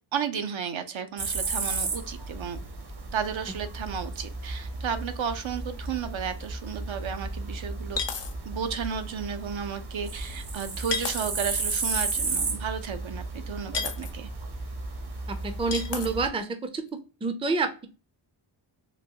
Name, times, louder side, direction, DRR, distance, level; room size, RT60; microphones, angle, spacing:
voice 1, 0.1-2.6 3.1-8.0 8.4-14.3, right 7 dB, 70° right, 9 dB, 0.6 m, -33 dB
sound 1, 1.2-16.3, right 3 dB, 50° right, 0.9 m, -34 dB
sound 2, 5.9-6.0 6.4-6.5 8.0-8.3 10.9-11.2 13.7-14.1 15.7-16.1, left 6 dB, 60° left, 0.6 m, -31 dB
voice 2, 15.3-16.5 16.7-16.8 17.2-17.9, right 3 dB, 10° right, 9 dB, 0.4 m, -28 dB
3.8 x 2.2 x 2.7 m, 0.34 s
cardioid pair, 55°, 49 cm